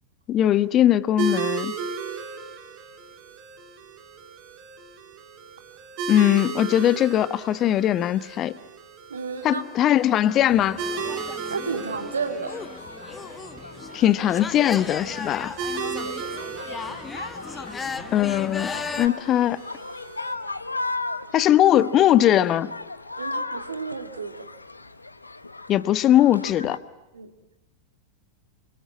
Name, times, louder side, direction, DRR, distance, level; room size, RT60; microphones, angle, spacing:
voice 1, 0.3-1.7 6.1-8.5 9.4-10.8 13.9-15.5 18.1-18.7 19.0-19.6 21.3-22.7 25.7-26.8, left 12 dB, 30° left, 17 dB, 0.9 m, -20 dB
sound 1, 1.2-20.3, right 5 dB, 40° right, 3.9 m, -36 dB
voice 2, 9.1-9.6 11.5-12.6 15.8-16.2 23.2-24.4 27.1-27.3, right 5 dB, 75° right, 7 dB, 2.1 m, -31 dB
sound 2, 10.5-19.1, left 5 dB, 15° left, 1.3 m, -36 dB
sound 3, 12.5-26.8, left 2 dB, 80° left, 1.0 m, -37 dB
28.0 x 24.5 x 7.6 m, 1.1 s
figure-of-eight pair, 90°, 0 cm